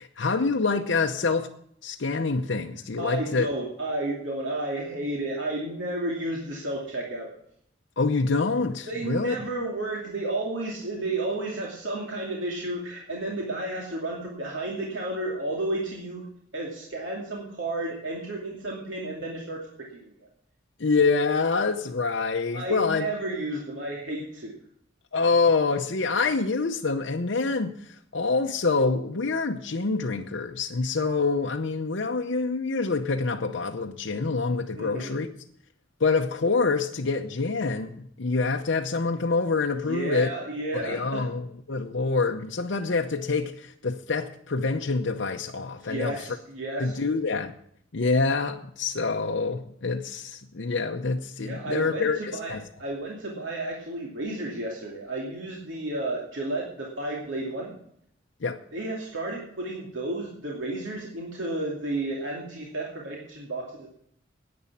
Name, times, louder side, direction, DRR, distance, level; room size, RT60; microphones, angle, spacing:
voice 1, 0.0-1.5 1.8-3.5 8.0-9.4 20.8-23.1 25.1-35.3 36.0-40.3 40.7-46.2 46.8-47.5 47.9-52.6 58.4-58.6, left 4 dB, 70° left, 0.8 m, -26 dB
voice 2, 3.0-7.3 8.9-16.2 16.5-20.3 22.5-24.5 34.8-35.2 39.8-41.3 45.8-47.0 51.4-57.7 58.7-63.9, right 2 dB, 75° right, 2.5 m, -32 dB
11.0 x 9.5 x 7.3 m
head